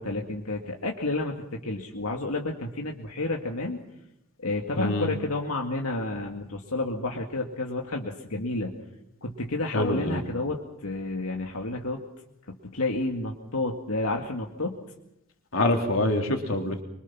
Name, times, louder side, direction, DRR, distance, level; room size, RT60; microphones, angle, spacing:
voice 1, 0.0-3.8 4.4-8.7 9.2-12.0 12.5-14.8, left 2 dB, 80° left, 1 dB, 2.2 m, -30 dB
voice 2, 4.8-5.1 9.7-10.2 15.5-16.8, left 1 dB, 65° left, 3 dB, 3.4 m, -25 dB
25.5 x 24.0 x 6.0 m, 0.83 s
head